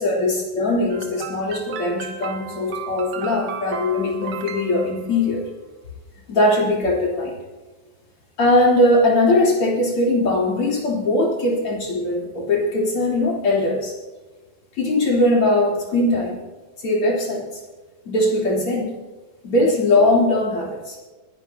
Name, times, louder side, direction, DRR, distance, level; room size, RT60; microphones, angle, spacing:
voice 1, 0.0-5.5 6.3-7.4 8.4-13.9 14.8-16.4 16.8-17.5 18.1-18.9 19.4-21.0, left 1 dB, 40° left, -3 dB, 4.3 m, -20 dB
sound 1, 0.9-5.5, right 6 dB, 65° right, 1.5 m, -34 dB
28.5 x 10.0 x 2.9 m, 1.2 s
omnidirectional pair, 4.0 m